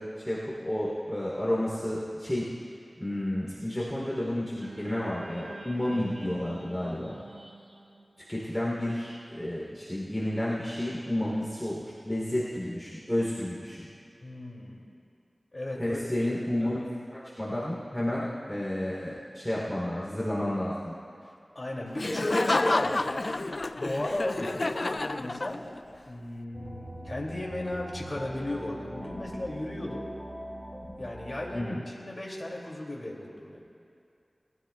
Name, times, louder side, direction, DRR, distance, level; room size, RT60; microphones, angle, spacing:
voice 1, 0.0-2.5 3.0-7.2 8.3-11.8 12.0-13.9 15.8-16.8 17.1-21.0 24.4-24.5 31.5-31.8, left 1 dB, 10° left, -6 dB, 3.1 m, -31 dB
sound 1, 4.6-8.9, right 2 dB, 55° right, 1.3 m, -46 dB
voice 2, 14.2-14.8 15.5-16.0 21.5-23.0 23.7-25.8 26.1-30.0 31.0-33.6, left 1 dB, 45° left, -3 dB, 2.5 m, -35 dB
Laughter, 22.0-25.9, left 2 dB, 60° left, 0.3 m, -29 dB
sound 2, 26.5-31.6, equal, 10° right, 4.0 m, -42 dB
22.5 x 15.5 x 2.3 m, 2.4 s
wide cardioid pair, 65°, 0 cm